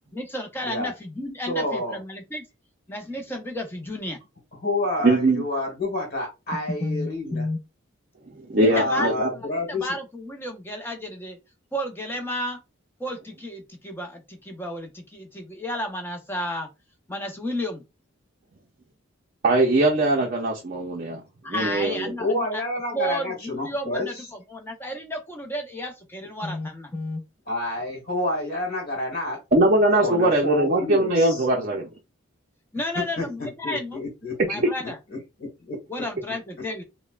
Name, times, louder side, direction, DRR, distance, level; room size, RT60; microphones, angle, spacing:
voice 1, 0.1-2.4 2.9-4.2 6.7-7.6 8.6-9.1 9.7-11.4 11.7-12.6 13.0-16.7 17.1-17.8 21.4-22.6 22.9-27.2 32.7-34.0 34.5-35.0 35.9-36.8, left 1 dB, 10° left, 0.7 m, -32 dB
voice 2, 1.5-2.0 4.5-7.4 8.7-9.9 22.2-24.3 27.5-29.4 30.0-31.4 32.9-34.6 35.1-35.8, left 1 dB, 45° left, 1.5 m, -29 dB
voice 3, 5.0-5.4 8.5-9.3 19.4-21.2 21.5-22.1 29.5-31.9, right 2 dB, 40° right, 0.6 m, -21 dB
5.4 x 2.2 x 2.4 m
head